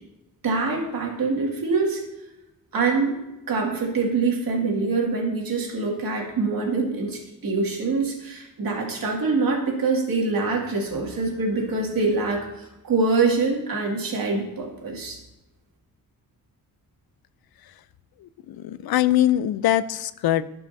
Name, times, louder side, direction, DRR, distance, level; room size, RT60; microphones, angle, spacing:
voice 1, 0.4-2.0 2.7-3.2 3.5-15.2, right 3 dB, 70° right, -1 dB, 2.3 m, -24 dB
voice 2, 18.5-20.4, left 13 dB, 85° left, 15 dB, 0.5 m, -22 dB
15.5 x 5.5 x 2.7 m, 0.97 s
wide cardioid pair, 130°, 36 cm